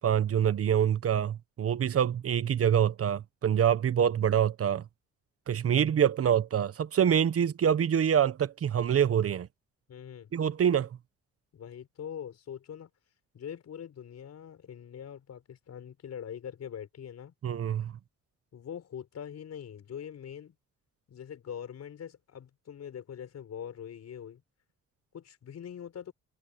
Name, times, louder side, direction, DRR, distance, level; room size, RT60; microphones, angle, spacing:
voice 1, 0.0-4.8 5.5-9.5 10.3-10.9 17.4-17.9, right 9 dB, 50° right, 1.1 m, -26 dB
voice 2, 9.9-10.3 11.5-12.9 13.3-17.3 18.5-20.5 21.1-24.4 25.1-26.1, left 8 dB, 60° left, 5.7 m, -43 dB
cardioid pair, 90°, 30 cm